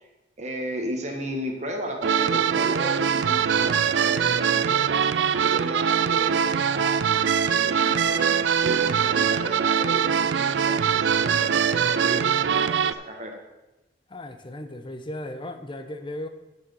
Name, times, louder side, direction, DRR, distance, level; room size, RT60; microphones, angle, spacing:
voice 1, 0.4-8.3 8.6-13.4, equal, 40° right, 2 dB, 1.6 m, -34 dB
sound 1, 2.0-12.9, right 7 dB, 85° right, 0.4 m, -22 dB
voice 2, 14.1-16.3, left 1 dB, 30° left, 8 dB, 0.8 m, -36 dB
7.7 x 6.5 x 7.0 m, 1.0 s
head